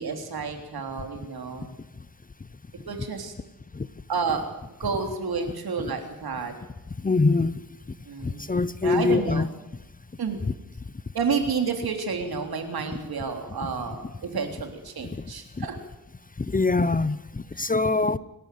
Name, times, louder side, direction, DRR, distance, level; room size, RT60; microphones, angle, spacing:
voice 1, 0.0-1.7 2.9-3.3 4.1-4.5 4.8-6.5 8.1-8.5 8.8-9.5 10.2-10.4 11.1-15.8 17.6-17.7, right 5 dB, 80° right, 3.5 m, -30 dB
voice 2, 7.0-7.6 8.2-9.5 13.6-13.7 15.1-15.2 15.6-15.7 16.4-18.2, left 3 dB, 25° left, 0.8 m, -24 dB
28.5 x 12.0 x 9.4 m
wide cardioid pair, 95°, 37 cm